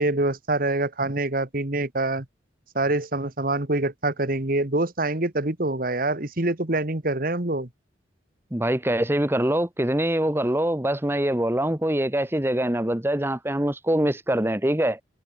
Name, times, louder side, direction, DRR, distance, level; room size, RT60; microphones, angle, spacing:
voice 1, 0.0-2.3 2.8-7.7, right 2 dB, 50° right, 1.9 m, -25 dB
voice 2, 8.5-15.0, right 1 dB, 15° right, 1.3 m, -24 dB
head